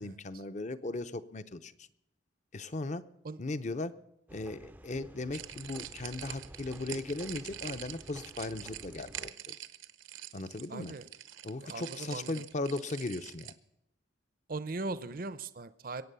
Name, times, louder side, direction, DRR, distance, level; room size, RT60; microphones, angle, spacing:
voice 1, 0.0-1.7 2.5-3.0 3.4-3.9 4.3-9.6 10.3-10.9 11.4-13.5, left 2 dB, 35° left, 13 dB, 0.7 m, -37 dB
sound 1, 4.3-9.3, right 1 dB, 10° right, 0.5 m, -52 dB
sound 2, 5.3-13.5, right 11 dB, 80° right, 0.9 m, -45 dB
voice 2, 10.7-11.1 11.6-12.3 14.5-16.0, right 3 dB, 45° right, 13 dB, 0.6 m, -39 dB
23.0 x 8.8 x 6.8 m, 0.84 s
head